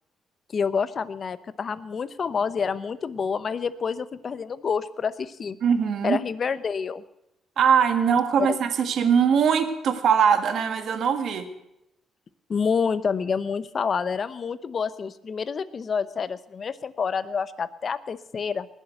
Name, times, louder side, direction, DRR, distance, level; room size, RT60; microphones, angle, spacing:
voice 1, 0.5-5.6 6.0-7.0 12.5-18.7, left 6 dB, 45° left, 15 dB, 0.8 m, -28 dB
voice 2, 5.6-6.2 7.6-11.5, right 7 dB, 65° right, 7 dB, 1.7 m, -21 dB
19.5 x 7.3 x 7.9 m, 0.86 s
cardioid pair, 90°, 0 cm